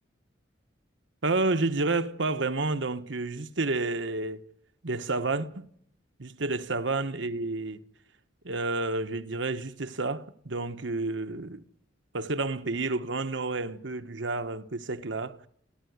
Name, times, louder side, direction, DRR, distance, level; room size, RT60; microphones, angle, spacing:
voice 1, 1.2-4.4 4.8-5.7 6.2-7.8 8.4-11.6 12.1-15.5, right 3 dB, 70° right, 1.3 m, -30 dB
29.0 x 14.0 x 9.5 m
head